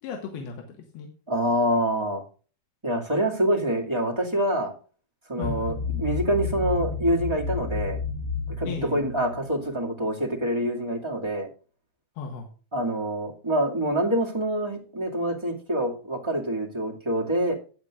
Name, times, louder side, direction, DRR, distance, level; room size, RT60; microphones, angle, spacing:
voice 1, 0.0-1.1 5.4-5.8 8.6-9.0 12.2-12.5, left 5 dB, 85° left, 2 dB, 3.5 m, -36 dB
voice 2, 1.3-2.2 2.8-4.7 5.3-8.0 8.6-11.5 12.7-17.5, right 1 dB, 15° right, -1 dB, 0.9 m, -26 dB
sound 1, 5.4-10.1, left 5 dB, 80° right, 6.3 m, -31 dB
15.5 x 9.3 x 2.4 m, 0.38 s
omnidirectional pair, 4.3 m